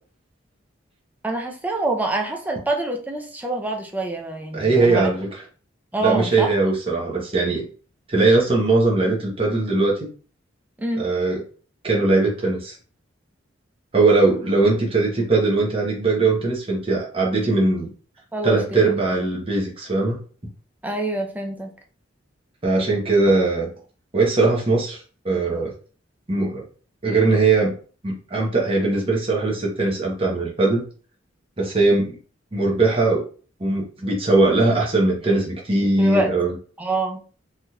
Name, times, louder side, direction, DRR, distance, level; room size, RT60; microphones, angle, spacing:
voice 1, 1.2-5.1 5.9-6.5 10.8-11.0 18.3-19.2 20.8-21.7 36.0-36.3 36.8-37.2, right 2 dB, 10° right, 2 dB, 0.5 m, -26 dB
voice 2, 4.5-5.4 6.0-7.6 8.1-10.1 10.9-11.4 11.8-12.7 13.9-17.9 18.4-20.2 22.6-23.7 24.1-25.0 25.2-25.7 26.3-26.6 27.0-27.7 28.0-30.8 31.6-32.1 32.5-33.2 33.6-36.5, right 3 dB, 30° right, -3 dB, 0.9 m, -20 dB
3.5 x 2.8 x 2.3 m, 0.40 s
head